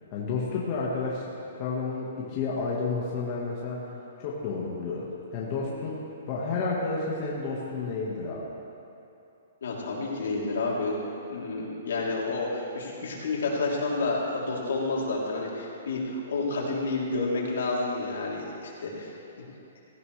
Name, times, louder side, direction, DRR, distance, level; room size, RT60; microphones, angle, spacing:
voice 1, 0.1-1.3 1.5-3.8 4.2-6.0 6.3-8.5, left 4 dB, 25° left, -5 dB, 1.4 m, -31 dB
voice 2, 9.6-11.0 11.3-19.1, left 3 dB, 75° left, -3 dB, 3.2 m, -30 dB
16.5 x 15.0 x 3.3 m, 2.9 s
hypercardioid pair, 175°, 0 cm